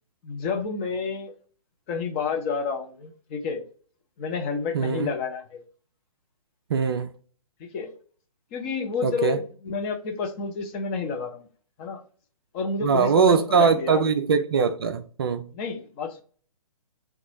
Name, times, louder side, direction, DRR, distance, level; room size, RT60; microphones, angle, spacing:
voice 1, 0.2-1.3 1.9-3.6 4.2-5.6 7.6-7.9 8.5-11.4 11.8-12.0 12.5-14.0 15.5-16.2, left 5 dB, 20° left, 0.6 m, -30 dB
voice 2, 4.7-5.1 6.7-7.1 9.0-9.4 12.8-15.5, right 5 dB, 40° right, 0.4 m, -21 dB
3.9 x 2.3 x 4.5 m
figure-of-eight pair, 130°, 18 cm